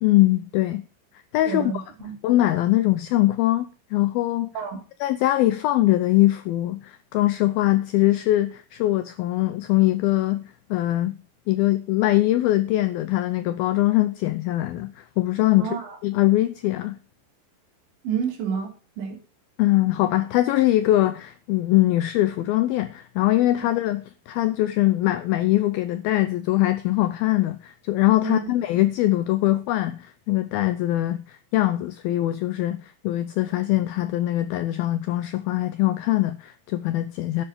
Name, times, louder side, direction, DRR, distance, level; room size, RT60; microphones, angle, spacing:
voice 1, 0.0-0.8 1.3-1.8 2.2-4.5 5.0-11.2 11.5-15.8 16.0-17.0 19.6-37.4, left 16 dB, 85° left, 2.1 m, -22 dB
voice 2, 1.5-2.2 4.6-4.8 15.6-16.0 18.0-19.2 28.2-28.4, right 7 dB, 85° right, 5.3 m, -29 dB
11.0 x 7.4 x 6.9 m
omnidirectional pair, 5.1 m